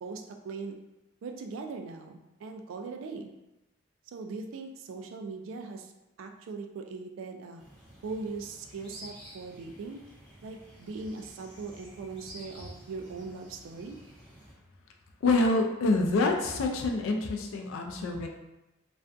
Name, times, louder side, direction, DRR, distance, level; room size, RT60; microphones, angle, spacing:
voice 1, 0.0-0.7 1.2-3.3 4.1-5.9 6.2-7.6 8.0-10.0 10.4-14.0, right 4 dB, 80° right, 4 dB, 0.3 m, -40 dB
sound 1, 7.6-14.5, equal, 5° left, 0.6 m, -51 dB
voice 2, 15.2-18.3, left 2 dB, 85° left, 3 dB, 0.3 m, -26 dB
2.4 x 2.2 x 2.5 m, 0.96 s
head